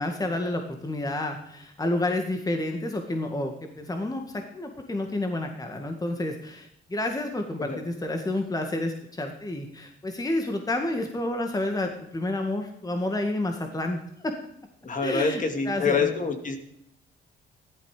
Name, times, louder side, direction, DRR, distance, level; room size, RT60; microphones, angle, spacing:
voice 1, 0.0-4.2 4.5-14.3 15.0-16.1, left 1 dB, 20° left, 4 dB, 1.9 m, -30 dB
voice 2, 14.8-16.6, left 4 dB, 40° left, 5 dB, 2.6 m, -26 dB
15.0 x 12.0 x 5.0 m, 0.76 s
cardioid pair, 90°, 20 cm